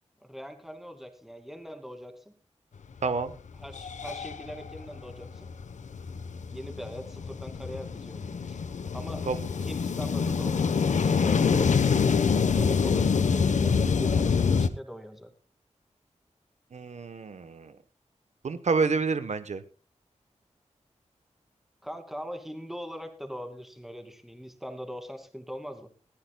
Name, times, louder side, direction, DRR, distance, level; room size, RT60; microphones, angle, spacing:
voice 1, 0.2-2.3 3.6-5.5 6.5-9.3 9.6-15.3 21.8-25.9, equal, ahead, 6 dB, 2.4 m, -41 dB
voice 2, 3.0-3.3 9.3-9.4 16.7-17.8 18.4-19.6, right 4 dB, 75° right, 11 dB, 1.1 m, -28 dB
sound 1, 3.1-3.2 3.6-14.7, left 5 dB, 90° left, 1.0 m, -26 dB
21.0 x 15.0 x 2.3 m, 0.32 s
wide cardioid pair, 120°, 12 cm